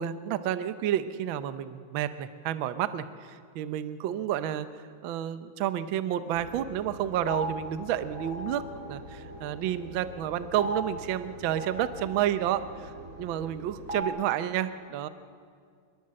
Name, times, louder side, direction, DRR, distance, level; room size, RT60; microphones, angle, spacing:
voice 1, 0.0-4.7 5.0-15.1, right 11 dB, 75° right, 12 dB, 1.1 m, -30 dB
sound 1, 6.3-14.0, equal, 30° right, 2.0 m, -39 dB
24.5 x 21.5 x 7.6 m, 2.2 s
omnidirectional pair, 3.3 m